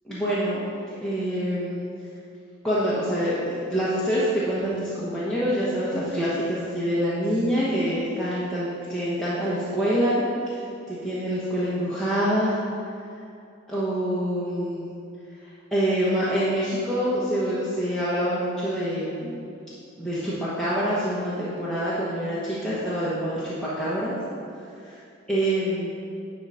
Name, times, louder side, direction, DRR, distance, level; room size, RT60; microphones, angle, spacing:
voice 1, 0.1-0.6 1.0-1.8 2.6-10.2 10.9-12.6 13.7-14.9 15.7-19.4 20.0-24.2 25.3-25.9, equal, 5° left, -11 dB, 1.1 m, -26 dB
10.5 x 3.9 x 5.7 m, 2.5 s
head